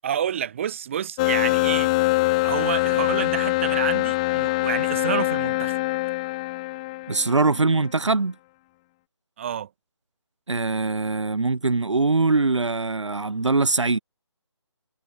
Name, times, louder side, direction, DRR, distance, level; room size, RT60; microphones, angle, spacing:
voice 1, 0.0-1.9 2.4-5.8 9.4-9.7, right 9 dB, 25° right, 2.1 m, -29 dB
sound 1, 1.2-7.6, left 21 dB, 15° left, 1.7 m, -23 dB
voice 2, 7.1-8.3 10.5-14.0, right 3 dB, 80° right, 2.3 m, -22 dB
figure-of-eight pair, 165°, 15 cm